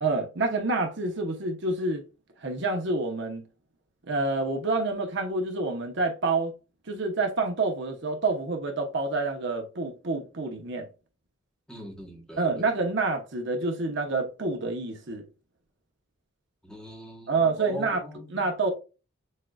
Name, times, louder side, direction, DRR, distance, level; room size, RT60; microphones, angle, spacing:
voice 1, 0.0-2.0 2.4-3.4 4.1-6.5 6.9-10.9 12.4-15.2 17.3-18.0 18.3-18.7, right 3 dB, 60° right, 0.8 m, -28 dB
voice 2, 11.7-12.7 16.6-18.3, right 1 dB, 5° left, 1.0 m, -42 dB
6.4 x 2.5 x 2.3 m
head